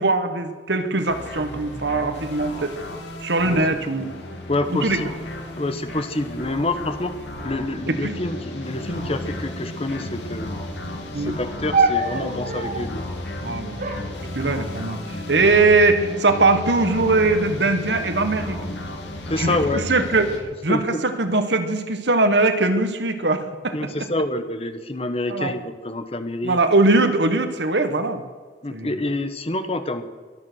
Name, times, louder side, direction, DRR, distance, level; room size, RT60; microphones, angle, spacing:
voice 1, 0.0-2.8 3.2-4.1 4.8-5.0 7.9-8.1 11.1-11.4 13.4-13.9 14.3-15.0 15.3-18.6 19.4-23.7 25.3-25.5 26.4-28.2 28.7-28.9, right 3 dB, 75° right, 8 dB, 1.6 m, -21 dB
sound 1, 1.1-20.4, left 1 dB, 85° left, 3.0 m, -33 dB
voice 2, 4.5-5.1 5.6-7.1 7.4-10.5 11.1-13.0 19.2-19.8 20.7-21.0 23.7-26.6 28.6-30.0, left 2 dB, 35° left, 9 dB, 1.1 m, -27 dB
sound 2, 11.7-13.0 13.8-15.0 15.8-16.3 16.6-17.2 17.9-19.2 19.9-20.4, right 3 dB, 50° right, 1.7 m, -28 dB
23.0 x 9.4 x 6.4 m, 1.4 s
head